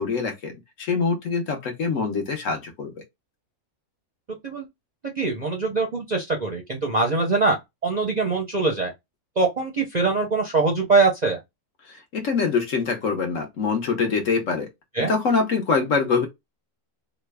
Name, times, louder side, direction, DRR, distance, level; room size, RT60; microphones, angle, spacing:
voice 1, 0.0-2.9 11.9-14.7 15.1-16.3, left 5 dB, 65° left, 1.2 m, -24 dB
voice 2, 5.0-7.6 7.8-8.9 9.4-11.4 14.9-15.1, right 3 dB, 45° right, 0.6 m, -23 dB
3.2 x 2.3 x 3.3 m
omnidirectional pair, 1.5 m